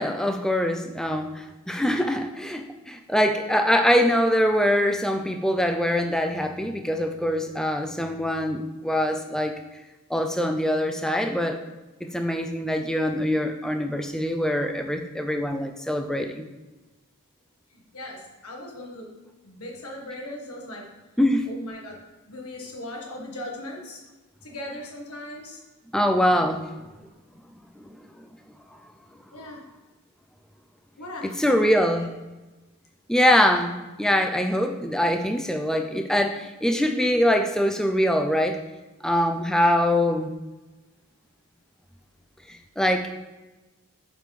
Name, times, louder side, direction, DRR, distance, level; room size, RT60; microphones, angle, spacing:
voice 1, 0.0-9.5 10.1-11.6 12.1-16.4 21.2-21.5 25.9-26.7 27.8-27.9 31.2-32.1 33.1-38.6 39.0-40.3 42.5-43.1, equal, 5° left, 5 dB, 0.4 m, -23 dB
voice 2, 17.7-19.1 19.4-20.8 21.4-22.0 22.3-24.0 24.4-25.6 29.3-29.6 31.0-32.1, left 1 dB, 80° left, 0 dB, 1.5 m, -38 dB
7.7 x 5.2 x 3.2 m, 1.2 s
head